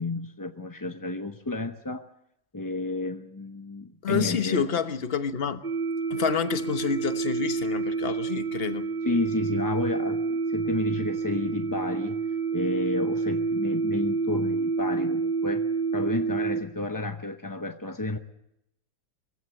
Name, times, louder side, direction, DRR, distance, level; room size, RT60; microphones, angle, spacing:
voice 1, 0.0-2.0 2.5-4.7 9.0-12.2 12.5-15.7 15.9-18.2, left 2 dB, 20° left, 6 dB, 0.6 m, -31 dB
voice 2, 4.0-5.6 6.1-8.9, left 6 dB, 40° left, 9 dB, 1.3 m, -28 dB
sound 1, 5.6-16.6, right 4 dB, 35° right, 1.6 m, -28 dB
23.0 x 16.0 x 7.8 m, 0.81 s
omnidirectional pair, 1.7 m